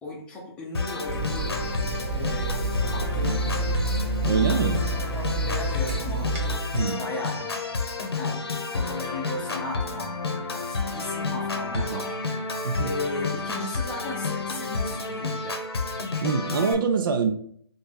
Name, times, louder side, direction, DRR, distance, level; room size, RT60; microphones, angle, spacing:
voice 1, 0.0-1.6 2.1-2.6 2.9-3.7 4.5-4.8 5.1-6.3 6.7-7.8 8.1-12.1 12.8-15.6, left 2 dB, 5° left, -3 dB, 0.6 m, -36 dB
Organ, 0.7-16.7, left 4 dB, 70° left, 0.8 m, -30 dB
Water tap faucet / Sink (filling or washing), 1.1-6.6, right 2 dB, 30° right, 0.9 m, -28 dB
voice 2, 4.2-4.9 6.7-7.0 11.7-12.0 12.6-12.9 16.2-17.3, right 5 dB, 55° right, 6 dB, 0.4 m, -25 dB
3.0 x 2.6 x 3.7 m, 0.62 s
hypercardioid pair, 155°, 14 cm